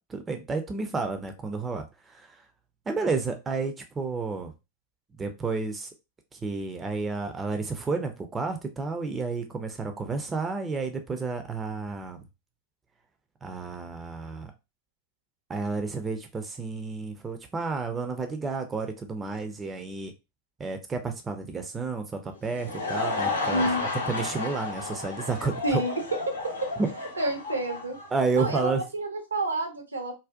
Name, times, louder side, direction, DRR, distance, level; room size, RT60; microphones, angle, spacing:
voice 1, 0.0-2.3 2.9-4.5 5.2-5.9 6.3-12.2 13.4-14.5 15.5-20.1 20.6-23.7 24.1-25.8 26.8-26.9 28.1-28.8, right 4 dB, 15° right, 0.4 m, -31 dB
Laughter / Crowd, 22.3-28.7, left 3 dB, 75° left, 0.7 m, -32 dB
voice 2, 23.5-23.8 25.6-25.9 27.2-28.0 28.3-30.1, right 1 dB, 80° right, 0.6 m, -29 dB
2.5 x 2.1 x 2.4 m
figure-of-eight pair, 90°, 0 cm